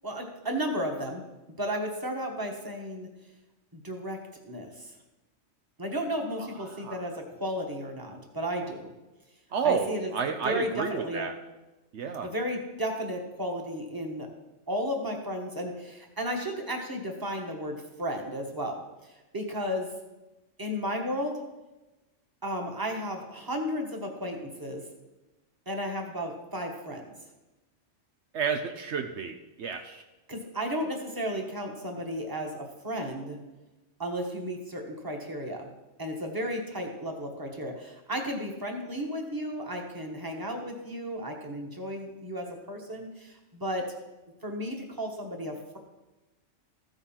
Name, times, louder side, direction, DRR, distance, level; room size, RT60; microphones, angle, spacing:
voice 1, 0.0-1.3 1.6-3.1 3.7-4.2 4.4-4.9 5.8-8.9 9.6-11.3 12.2-14.3 14.7-19.9 20.6-21.4 22.4-24.8 25.6-27.1 30.3-33.4 34.0-35.7 36.0-43.8 44.4-45.8, equal, 15° right, 2 dB, 1.4 m, -34 dB
voice 2, 6.4-7.0 9.5-11.3 11.9-12.3 28.3-30.0, right 6 dB, 70° right, 6 dB, 0.9 m, -31 dB
14.5 x 5.3 x 5.7 m, 1.1 s
omnidirectional pair, 1.3 m